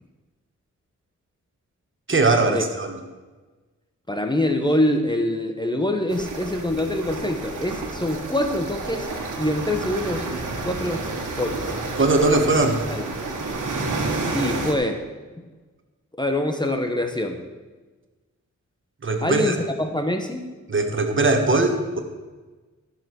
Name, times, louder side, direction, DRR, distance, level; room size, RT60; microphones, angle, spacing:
voice 1, 2.1-3.0 12.0-12.8 19.0-19.5 20.7-22.0, right 3 dB, 40° right, 5 dB, 1.3 m, -20 dB
voice 2, 4.1-9.1 9.4-10.3 10.6-11.1 11.3-11.6 12.4-12.5 12.9-13.0 14.3-15.0 16.2-17.4 19.2-20.4, left 1 dB, 15° left, 5 dB, 0.8 m, -24 dB
sound 1, 6.1-14.7, right 3 dB, 85° right, 1.6 m, -30 dB
13.5 x 6.6 x 4.6 m, 1.3 s
cardioid pair, 75°, 31 cm